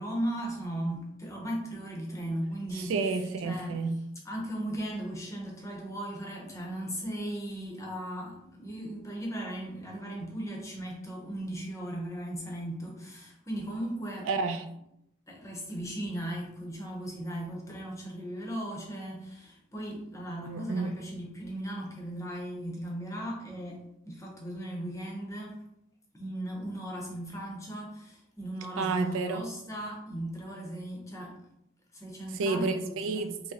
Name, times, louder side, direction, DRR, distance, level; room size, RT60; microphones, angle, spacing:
voice 1, 0.0-2.9 3.4-3.8 4.2-14.3 15.3-25.6 26.1-31.4 31.9-33.2, right 1 dB, 15° left, 0.6 m, -37 dB
voice 2, 2.7-4.0 14.3-14.7 20.4-20.9 28.8-29.4 32.3-33.5, right 3 dB, 75° right, 0.3 m, -30 dB
3.6 x 2.9 x 2.7 m
head